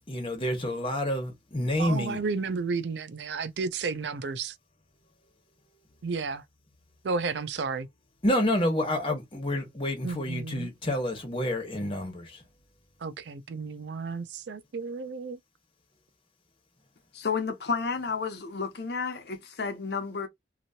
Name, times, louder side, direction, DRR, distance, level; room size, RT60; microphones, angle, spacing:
voice 1, 0.1-2.2 8.2-12.4, left 1 dB, 30° left, 1.2 m, -28 dB
voice 2, 1.8-4.5 6.0-6.4 7.0-7.9 10.0-10.7 13.0-15.4, right 4 dB, 75° right, 0.4 m, -32 dB
voice 3, 17.1-20.3, left 5 dB, 65° left, 0.8 m, -31 dB
2.9 x 2.7 x 2.7 m
head